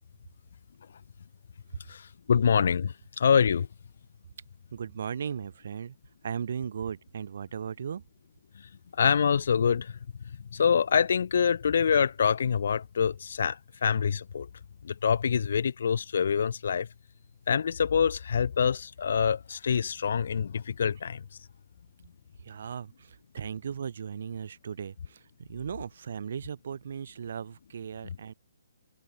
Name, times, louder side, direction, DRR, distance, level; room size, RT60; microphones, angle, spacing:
voice 1, 2.3-3.7 9.0-10.0 10.5-14.5 14.8-16.9 17.5-21.2, left 7 dB, 65° left, 0.3 m, -25 dB
voice 2, 4.7-6.0 6.2-8.0 22.4-28.3, right 7 dB, 60° right, 4.1 m, -37 dB
hypercardioid pair, 140°, 0 cm